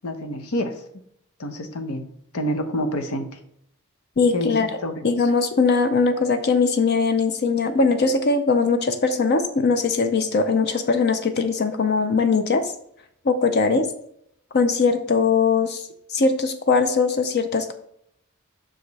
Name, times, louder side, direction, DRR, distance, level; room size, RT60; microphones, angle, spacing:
voice 1, 0.0-0.8 1.4-2.1 2.3-3.4 4.3-4.5 4.8-5.1, equal, 85° left, 7 dB, 0.9 m, -27 dB
voice 2, 4.2-4.7 5.0-12.7 13.2-13.9 14.5-15.8 16.1-17.7, left 4 dB, 50° left, 8 dB, 0.5 m, -20 dB
5.9 x 4.9 x 4.0 m, 0.71 s
head